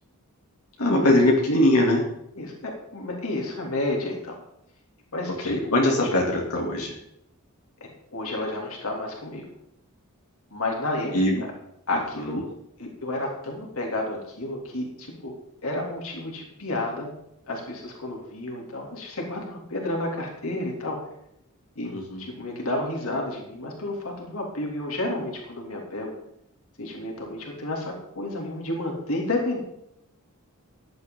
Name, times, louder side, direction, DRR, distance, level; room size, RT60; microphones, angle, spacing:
voice 1, 0.8-2.0 5.4-6.9 11.1-11.4 12.2-12.4 21.8-22.2, left 1 dB, 85° left, -2 dB, 2.9 m, -21 dB
voice 2, 2.3-4.4 5.1-5.6 5.9-6.1 7.8-9.5 10.5-11.5 11.9-12.5 12.8-15.3 15.6-17.1 17.5-21.0 21.7-21.9 22.2-26.2 26.8-29.6, left 2 dB, 70° left, 0 dB, 3.1 m, -31 dB
14.5 x 10.5 x 3.9 m, 0.78 s
head